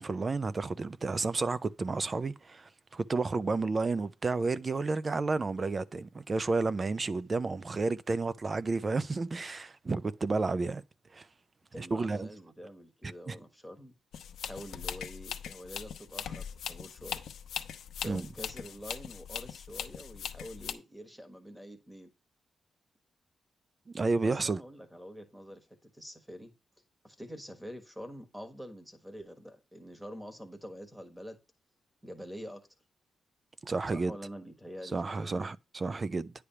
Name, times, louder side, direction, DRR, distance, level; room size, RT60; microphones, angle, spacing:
voice 1, 0.0-10.8 11.1-11.3 11.8-12.3 13.3-13.4 18.0-18.3 23.9-24.6 33.6-34.1 34.9-36.3, right 3 dB, 30° right, 0.4 m, -31 dB
voice 2, 11.7-13.9 14.4-17.2 18.0-22.1 24.2-26.5 27.0-31.4 32.0-32.6 33.9-35.4, equal, ahead, 1.4 m, -46 dB
sound 1, 14.1-20.7, left 8 dB, 90° left, 0.8 m, -40 dB
9.8 x 3.4 x 5.6 m
wide cardioid pair, 140°, 0 cm